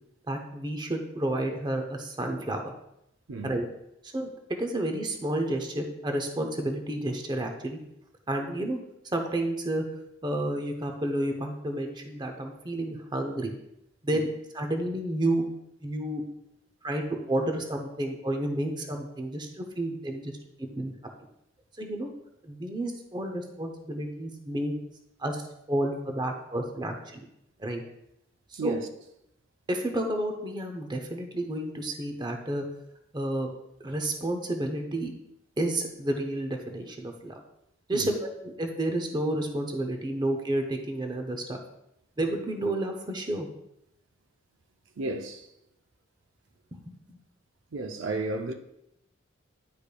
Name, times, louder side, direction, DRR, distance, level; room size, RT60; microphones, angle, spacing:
voice 1, 0.3-2.7 3.4-3.6 4.0-4.3 4.6-7.8 8.3-8.8 9.1-9.8 10.2-13.6 14.0-14.3 14.5-15.4 15.8-16.2 16.8-20.3 20.6-20.9 21.8-22.1 22.4-24.7 25.2-25.4 25.7-27.2 27.6-27.8 28.5-28.8 29.7-32.6 33.1-33.5 33.8-35.1 35.6-37.4 37.9-38.3 38.6-41.6 42.2-43.5 46.7-47.2, right 1 dB, 20° right, 0.6 m, -30 dB
voice 2, 28.5-28.9 37.9-38.1 45.0-45.5 47.7-48.5, right 2 dB, 70° right, 0.6 m, -33 dB
10.0 x 5.0 x 2.2 m
head